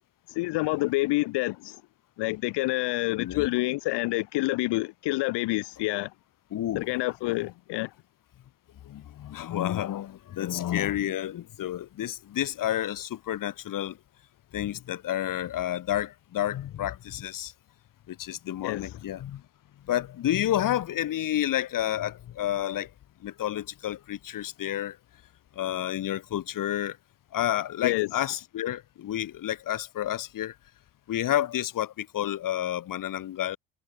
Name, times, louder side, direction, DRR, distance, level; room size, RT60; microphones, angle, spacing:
voice 1, 0.3-1.8 2.2-6.1 6.7-7.9 18.6-19.0 27.8-28.1, left 21 dB, 60° left, 1.0 m, -28 dB
voice 2, 6.5-6.9 8.8-14.0 14.5-17.5 18.1-19.4 19.9-22.9 23.2-25.0 25.6-27.0 27.3-30.5 31.1-33.6, left 12 dB, 45° left, 1.2 m, -30 dB
hypercardioid pair, 60°, 47 cm